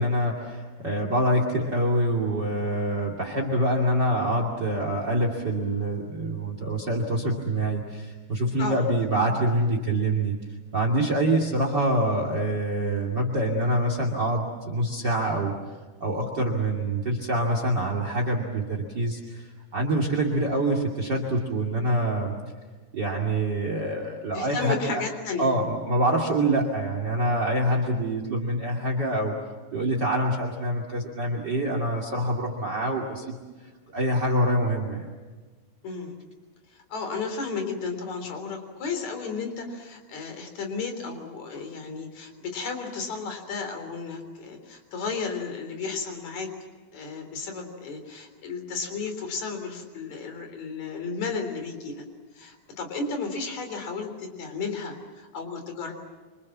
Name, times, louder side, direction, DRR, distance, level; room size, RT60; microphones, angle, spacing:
voice 1, 0.0-10.4 10.7-15.6 16.0-22.4 22.9-25.0 25.4-29.3 29.7-33.4 33.9-35.1, right 1 dB, 30° right, 3 dB, 2.7 m, -25 dB
voice 2, 24.3-25.5 35.8-36.1 36.7-46.5 46.9-52.0 52.3-55.9, left 4 dB, 50° left, 5 dB, 4.8 m, -33 dB
27.0 x 26.5 x 7.4 m, 1.3 s
omnidirectional pair, 4.2 m